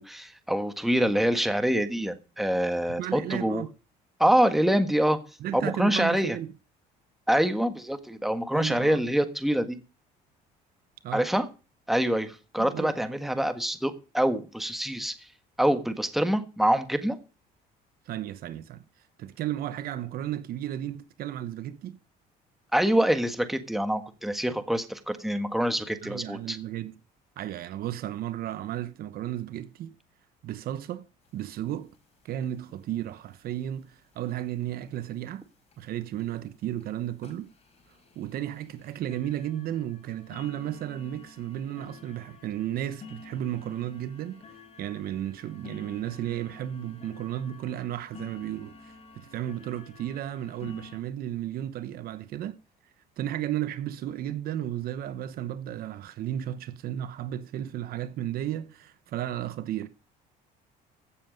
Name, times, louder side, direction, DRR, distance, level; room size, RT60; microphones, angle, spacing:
voice 1, 0.0-3.6 4.2-5.2 5.6-6.4 7.3-9.8 11.1-11.5 11.9-15.1 15.6-17.2 22.7-26.6, equal, ahead, 1.4 m, -25 dB
voice 2, 3.0-3.7 5.4-6.5 8.5-9.1 11.0-11.2 12.6-13.0 18.1-18.8 19.2-22.0 26.0-26.9 27.4-29.9 30.4-31.1 31.3-31.9 32.2-35.4 35.8-37.5 38.2-52.5 53.2-59.9, right 12 dB, 60° right, 1.0 m, -34 dB
sound 1, 31.3-31.4 31.6-31.7 31.9-32.1 32.4-32.8 33.5-33.6 34.1-34.2 34.6-34.7 35.1-35.2 35.7-35.8 36.2-36.4 36.8-36.9 37.2-51.0, left 4 dB, 40° left, 4.9 m, -50 dB
15.5 x 7.8 x 5.2 m
cardioid pair, 120°, 17 cm